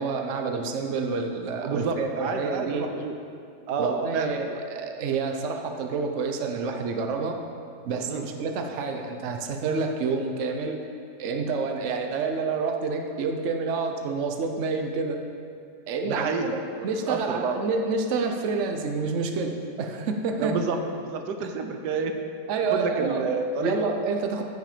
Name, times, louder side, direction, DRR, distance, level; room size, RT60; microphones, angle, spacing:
voice 1, 0.0-2.9 3.8-7.4 7.8-10.8 11.2-15.2 15.9-20.5 21.4-21.5 22.5-23.2 23.6-24.4, right 4 dB, 55° right, 4 dB, 1.1 m, -28 dB
voice 2, 1.6-3.1 3.7-4.6 8.1-8.3 16.0-17.6 20.4-22.2 22.7-23.8, right 4 dB, 85° right, 5 dB, 1.4 m, -29 dB
14.0 x 6.6 x 5.1 m, 2.4 s
omnidirectional pair, 1.7 m